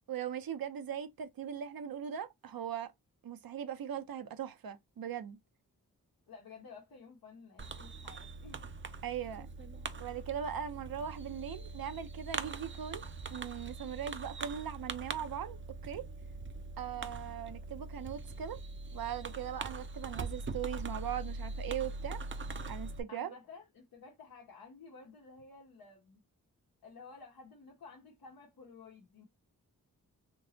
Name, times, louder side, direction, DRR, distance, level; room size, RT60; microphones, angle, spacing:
voice 1, 0.1-2.9 3.2-5.4 9.0-9.5 10.0-13.0 13.3-16.1 16.8-18.6 18.9-22.2 22.7-23.3, right 9 dB, 80° right, 0.7 m, -39 dB
voice 2, 6.3-8.7 16.9-17.1 23.1-26.2 26.8-29.3, left 4 dB, 90° left, 1.1 m, -53 dB
Fireworks, 7.6-23.0, right 3 dB, 35° right, 0.5 m, -42 dB
3.7 x 2.9 x 2.7 m
cardioid pair, 70°, 35 cm